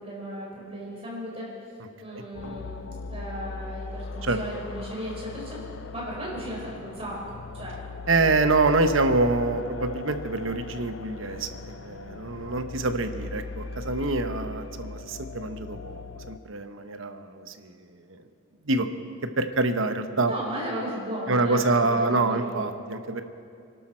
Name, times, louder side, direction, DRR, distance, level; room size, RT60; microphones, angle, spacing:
voice 1, 0.0-1.5 2.0-5.6 5.9-7.2 7.5-7.8 20.3-22.5, equal, 30° right, -4 dB, 4.6 m, -35 dB
sound 1, 2.3-16.4, left 3 dB, 65° left, 0.5 m, -39 dB
voice 2, 8.1-17.8 18.1-18.2 18.6-18.9 19.4-20.3 21.3-23.2, right 3 dB, 70° right, 8 dB, 0.9 m, -26 dB
24.5 x 12.0 x 4.5 m, 2.5 s
head